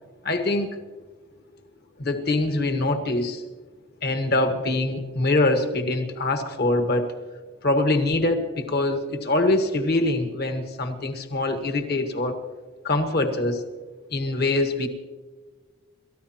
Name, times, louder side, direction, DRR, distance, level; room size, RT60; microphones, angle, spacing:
voice 1, 0.2-0.7 2.0-3.4 4.0-7.1 7.6-12.4 12.8-13.6 14.1-14.9, left 2 dB, 50° left, 5 dB, 1.6 m, -24 dB
29.0 x 14.0 x 3.0 m, 1.4 s
head